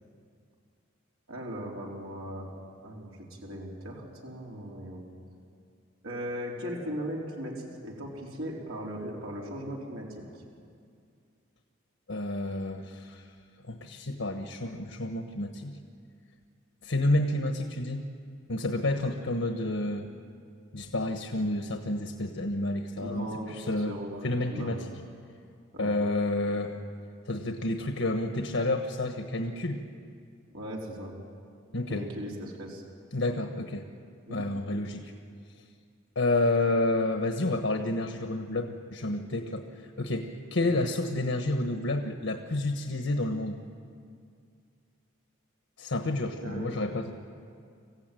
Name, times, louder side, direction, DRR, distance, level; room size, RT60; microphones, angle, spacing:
voice 1, 1.3-2.5 2.8-5.0 6.0-10.2 23.0-23.6 23.9-24.8 25.7-25.9 30.5-31.1 31.9-32.8 34.3-34.4 40.6-40.7 46.4-46.7, equal, 90° right, -2 dB, 4.0 m, -38 dB
voice 2, 12.1-13.3 13.7-15.7 16.8-18.1 18.5-20.1 20.7-23.9 24.2-24.9 25.8-26.8 27.3-29.8 31.7-32.0 33.1-33.9 34.3-35.1 36.1-39.6 40.0-43.6 45.8-47.1, left 2 dB, 70° left, 4 dB, 1.3 m, -30 dB
26.0 x 15.5 x 9.2 m, 2.3 s
head